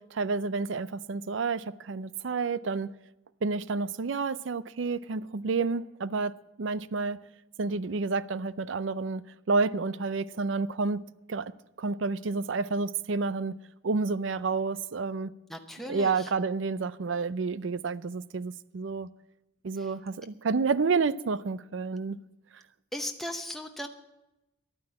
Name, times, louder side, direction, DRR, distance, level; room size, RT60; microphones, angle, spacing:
voice 1, 0.0-2.9 3.4-6.3 6.6-7.2 7.6-9.2 9.5-11.0 11.3-11.5 11.8-13.6 13.8-15.3 15.9-19.1 19.6-22.2, right 4 dB, 80° right, 0.5 m, -29 dB
voice 2, 15.5-16.3 19.8-19.9 22.9-23.9, left 1 dB, ahead, 0.8 m, -37 dB
12.0 x 9.6 x 8.6 m
head